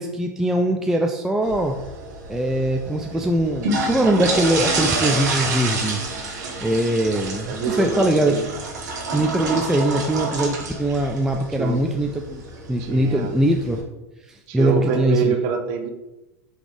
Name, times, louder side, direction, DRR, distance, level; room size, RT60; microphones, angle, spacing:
voice 1, 0.0-1.7 2.3-6.0 6.6-8.4 9.1-12.4 12.7-13.8 14.3-15.4, right 1 dB, 5° right, 2 dB, 0.3 m, -21 dB
sound 1, 1.4-13.8, right 3 dB, 80° right, 1.2 m, -28 dB
voice 2, 7.4-8.6 11.6-11.8 12.8-13.3 14.5-15.9, right 6 dB, 55° right, 5 dB, 0.6 m, -26 dB
3.9 x 3.4 x 3.2 m, 1.0 s
hypercardioid pair, 100°, 9 cm